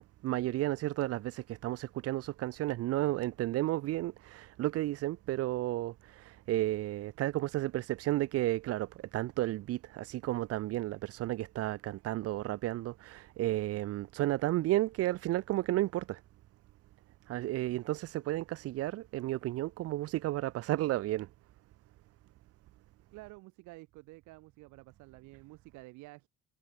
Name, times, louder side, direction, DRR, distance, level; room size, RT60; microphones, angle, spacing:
voice 1, 0.0-16.2 17.3-21.3, right 16 dB, 55° right, 2.0 m, -32 dB
voice 2, 23.1-26.3, right 22 dB, 85° right, 5.8 m, -51 dB
cardioid pair, 175°, 29 cm